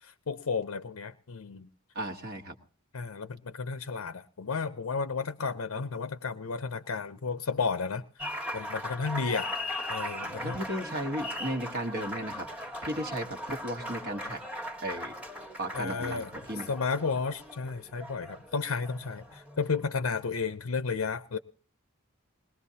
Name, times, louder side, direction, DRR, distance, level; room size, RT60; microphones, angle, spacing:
voice 1, 0.0-1.7 2.9-9.5 9.9-10.6 15.7-16.3 16.7-21.4, left 5 dB, 80° left, 11 dB, 0.6 m, -33 dB
voice 2, 1.9-2.5 10.4-14.4 14.8-15.1 15.6-16.7, right 1 dB, 50° right, 3 dB, 1.2 m, -35 dB
Applause, 8.2-20.0, left 1 dB, 5° right, 1.3 m, -39 dB
21.0 x 19.5 x 2.8 m, 0.40 s
head